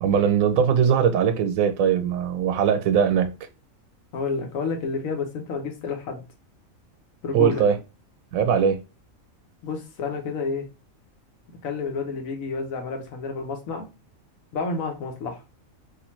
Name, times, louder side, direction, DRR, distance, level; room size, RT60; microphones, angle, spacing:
voice 1, 0.0-3.3 7.3-7.8 8.3-8.8, right 7 dB, 85° right, 1.0 m, -20 dB
voice 2, 4.1-6.2 7.2-7.6 9.6-10.7 11.6-13.9 14.5-15.4, left 4 dB, 80° left, 1.2 m, -30 dB
3.3 x 2.8 x 3.0 m
omnidirectional pair, 1.4 m